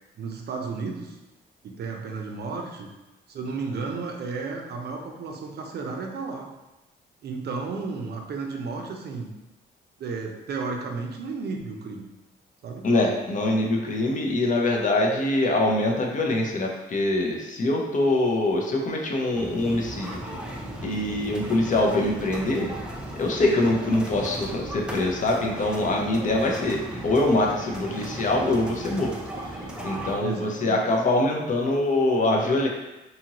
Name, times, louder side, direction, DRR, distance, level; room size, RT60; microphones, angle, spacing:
voice 1, 0.2-1.2 1.6-2.9 3.3-6.5 7.2-9.3 10.0-12.1 12.6-12.9 13.6-13.7 30.2-30.8, right 4 dB, 55° right, 2 dB, 0.5 m, -33 dB
voice 2, 12.8-20.2 20.8-22.7 23.2-29.1 29.8-32.7, left 2 dB, 40° left, 0 dB, 0.6 m, -24 dB
sound 1, 19.3-30.2, right 1 dB, 5° right, 0.5 m, -36 dB
2.7 x 2.5 x 2.8 m, 1.0 s
cardioid pair, 90°, 20 cm